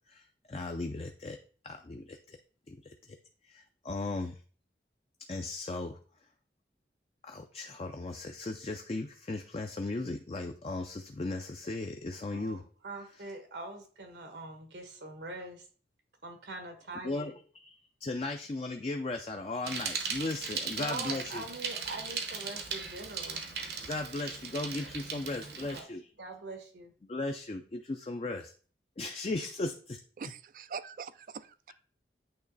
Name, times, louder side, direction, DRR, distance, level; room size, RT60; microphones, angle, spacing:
voice 1, 0.1-1.4 1.6-2.4 2.7-3.2 3.4-4.4 5.3-6.0 7.2-12.6 17.0-17.7 18.0-21.4 23.8-26.1 27.1-28.5 29.0-30.0, left 2 dB, 35° left, 4 dB, 0.4 m, -37 dB
voice 2, 12.3-15.6 16.2-17.3 20.8-23.4 25.6-25.9 26.2-26.9, right 2 dB, 80° right, 5 dB, 1.3 m, -43 dB
Bicycle, 19.6-25.8, right 5 dB, 65° right, 1.0 m, -38 dB
voice 3, 30.2-31.7, right 6 dB, 50° right, 15 dB, 0.3 m, -43 dB
8.7 x 3.1 x 4.0 m, 0.41 s
head